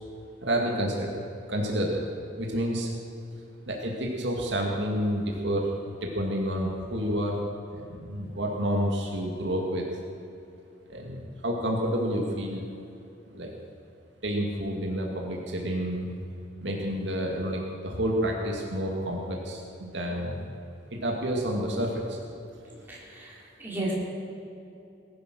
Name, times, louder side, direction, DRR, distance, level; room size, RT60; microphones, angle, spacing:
voice 1, 0.4-1.2 1.5-2.0 2.4-2.9 3.7-5.7 6.0-7.4 7.7-9.8 10.9-12.7 13.3-13.5 14.2-16.1 16.6-20.4 20.9-22.2, equal, 70° right, -1 dB, 2.3 m, -29 dB
voice 2, 22.6-23.9, right 1 dB, 10° right, -6 dB, 4.5 m, -35 dB
19.0 x 11.5 x 6.3 m, 2.8 s
head